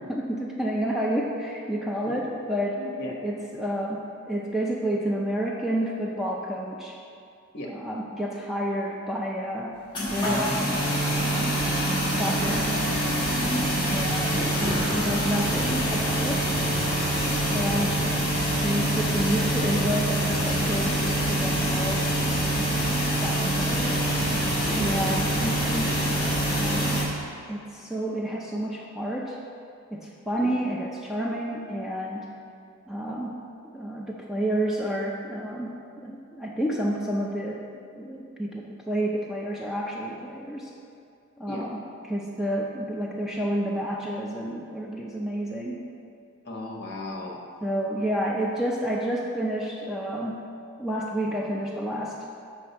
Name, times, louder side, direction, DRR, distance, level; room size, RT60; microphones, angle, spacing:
voice 1, 0.0-2.8 3.2-7.0 7.6-9.8 10.1-10.7 11.1-11.6 12.1-12.7 13.2-16.5 17.5-18.0 18.6-22.1 22.5-24.1 24.7-26.0 26.5-27.1 27.5-29.4 29.9-32.3 32.9-33.3 33.7-37.6 37.9-40.7 41.4-45.8 47.6-50.4 50.8-52.2, right 1 dB, ahead, -3 dB, 0.4 m, -30 dB
voice 2, 2.8-3.1 7.5-7.7 14.3-14.5 24.6-24.9 30.4-30.5 41.5-41.6 46.4-47.4, left 1 dB, 50° left, -1 dB, 1.2 m, -35 dB
sound 1, 9.9-27.0, right 1 dB, 20° left, 1.6 m, -25 dB
7.8 x 5.9 x 4.2 m, 2.5 s
head